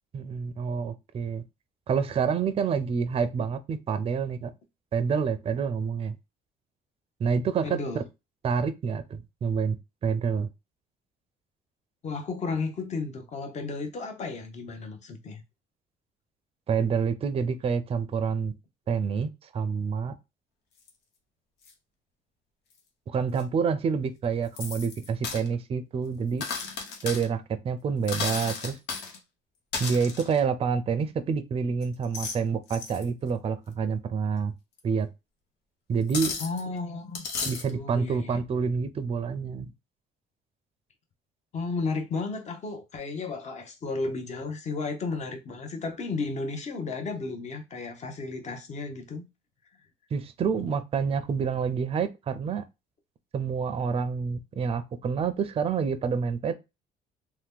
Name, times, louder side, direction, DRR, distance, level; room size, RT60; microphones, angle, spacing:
voice 1, 0.1-1.4 1.9-4.5 4.9-6.1 7.2-8.0 8.4-9.8 10.0-10.5 16.7-18.5 18.9-20.1 23.1-26.4 27.0-28.8 29.8-34.5 34.8-35.1 35.9-36.4 37.4-39.7 50.1-52.6 53.3-56.5, right 6 dB, 35° right, 0.5 m, -28 dB
voice 2, 7.6-8.0 12.0-15.4 36.4-38.4 41.5-49.3, left 3 dB, 45° left, 0.8 m, -33 dB
sound 1, 20.9-21.0 21.7-21.8 23.4-23.5 24.6-25.5 26.4-27.3 28.0-29.2 29.7-30.4 31.8-32.4 32.7-33.0 34.8-34.9 36.1-36.6 37.1-37.7, left 5 dB, 90° left, 0.8 m, -34 dB
2.9 x 2.2 x 3.4 m
cardioid pair, 110°, 17 cm